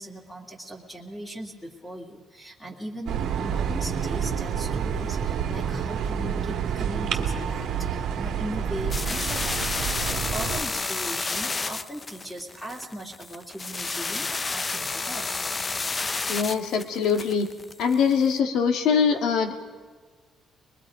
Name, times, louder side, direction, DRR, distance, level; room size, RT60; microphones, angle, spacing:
voice 1, 0.0-15.4, right 1 dB, 10° left, -3 dB, 2.3 m, -39 dB
sound 1, 3.1-10.6, right 7 dB, 75° right, 1.7 m, -28 dB
sound 2, 8.9-18.3, left 3 dB, 25° left, 0.5 m, -31 dB
voice 2, 16.3-17.5 17.8-19.5, left 6 dB, 75° left, 5 dB, 1.9 m, -23 dB
24.5 x 21.5 x 5.0 m, 1.4 s
cardioid pair, 130°, 0 cm